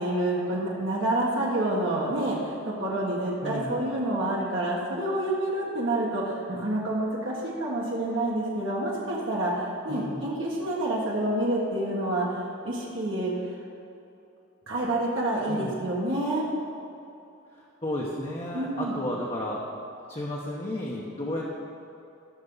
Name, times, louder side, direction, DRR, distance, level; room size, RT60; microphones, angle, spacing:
voice 1, 0.0-13.3 14.7-16.4 18.5-19.0, right 1 dB, 65° right, -5 dB, 1.7 m, -28 dB
voice 2, 3.4-3.8 9.9-10.2 15.5-15.7 17.5-19.6 20.1-21.6, left 1 dB, 30° left, -4 dB, 0.9 m, -33 dB
16.5 x 6.7 x 4.0 m, 2.8 s
head